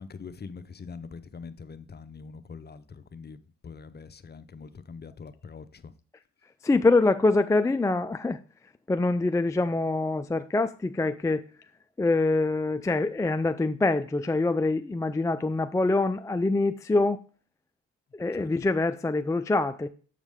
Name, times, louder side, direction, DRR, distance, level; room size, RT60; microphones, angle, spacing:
voice 1, 0.0-5.9 18.3-18.7, left 5 dB, 35° left, 0.7 m, -44 dB
voice 2, 6.6-8.4 8.9-11.5 12.0-17.2 18.1-19.9, left 2 dB, 10° left, 0.4 m, -25 dB
7.3 x 5.0 x 3.5 m
supercardioid pair, 60°, 29 cm